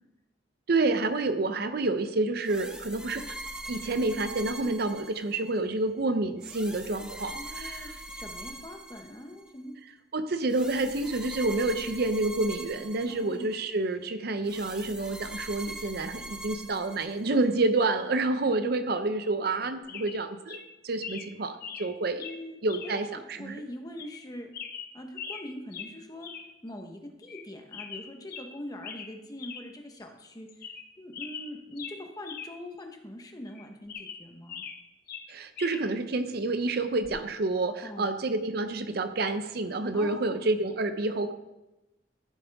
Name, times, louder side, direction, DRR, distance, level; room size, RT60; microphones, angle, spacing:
voice 1, 0.7-3.4 3.7-7.9 10.1-20.6 20.8-22.2 22.6-23.6 35.3-41.3, right 2 dB, 60° right, 10 dB, 0.6 m, -28 dB
sound 1, 2.4-5.6 6.4-9.5 10.5-13.6 14.4-17.5, right 1 dB, 5° right, 0.9 m, -42 dB
voice 2, 7.3-9.8 13.1-13.5 22.2-22.6 22.8-24.5 24.9-26.3 26.6-34.6 37.8-38.1 39.9-40.4, left 1 dB, 20° left, 4 dB, 1.1 m, -43 dB
sound 2, 19.4-19.6 19.9-20.2 20.5-20.6 21.0-21.3 21.6-21.9 22.2-22.4 22.7-22.9 23.3-23.4 24.0-24.2 24.5-25.5 25.7-25.9 26.2-26.5 26.8-26.9 27.2-27.4 27.7-28.5 28.8-29.1 29.4-29.6 30.0-30.1 30.5-30.9 31.1-32.5 32.8-32.9 33.5-34.8 35.1-35.8 37.0-37.2, left 7 dB, 55° left, 0.8 m, -41 dB
13.5 x 7.2 x 3.5 m, 0.99 s
head